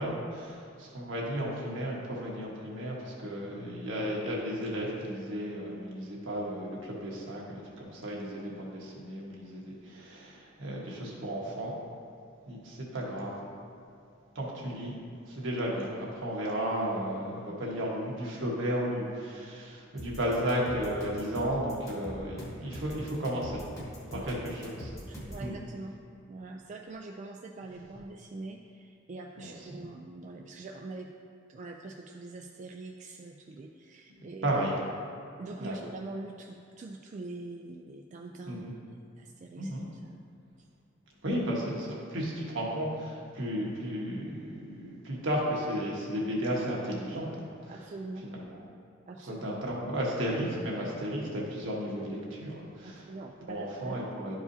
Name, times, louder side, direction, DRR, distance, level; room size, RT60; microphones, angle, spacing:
voice 1, 0.0-11.7 12.5-13.4 14.3-14.9 15.3-23.6 24.1-24.9 25.4-25.5 29.4-29.9 34.4-34.7 35.6-35.8 38.5-38.7 39.6-39.8 41.2-47.5 48.2-48.4 49.3-53.1 53.5-54.4, equal, 75° right, -3 dB, 1.5 m, -34 dB
sound 1, 20.0-25.5, equal, 15° left, 1.2 m, -43 dB
voice 2, 25.0-25.9 26.3-31.1 31.5-34.6 35.4-39.7 40.0-40.2 47.7-48.2 49.1-49.6 52.8-54.0, right 2 dB, 40° right, 2 dB, 0.3 m, -43 dB
11.5 x 4.8 x 2.8 m, 2.5 s
head